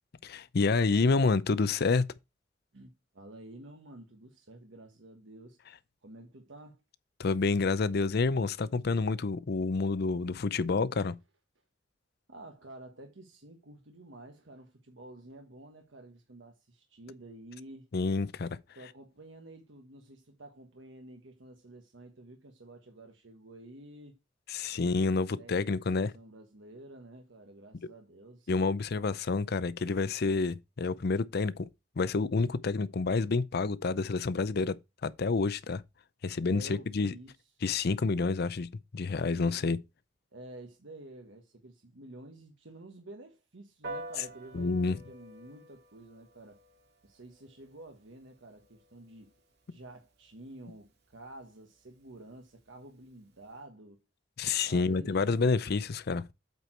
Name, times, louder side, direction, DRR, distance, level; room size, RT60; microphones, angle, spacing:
voice 1, 0.2-2.0 7.2-11.1 17.9-18.5 24.5-26.1 28.5-31.7 32.0-34.7 35.0-35.8 36.2-37.1 37.6-38.7 38.9-39.8 44.5-45.0 54.4-56.2, left 4 dB, 60° left, 0.5 m, -28 dB
voice 2, 2.7-5.6 6.0-6.8 12.3-17.9 18.7-24.1 24.7-28.5 36.5-37.3 39.3-39.6 40.3-46.6 47.0-49.3 49.7-54.0 54.6-55.4, right 1 dB, 80° right, 1.3 m, -50 dB
Piano, 43.8-53.6, right 1 dB, 60° right, 2.2 m, -50 dB
8.2 x 4.6 x 4.4 m
head